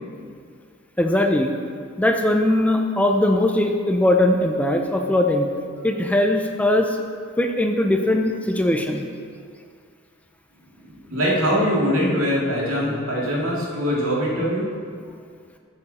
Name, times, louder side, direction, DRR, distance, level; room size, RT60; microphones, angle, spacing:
voice 1, 1.0-1.5 2.0-5.5 5.8-7.0 7.4-9.0, left 1 dB, 5° left, 3 dB, 0.5 m, -20 dB
voice 2, 10.8-14.7, equal, 85° right, -5 dB, 2.5 m, -22 dB
11.5 x 6.9 x 4.2 m, 2.2 s
head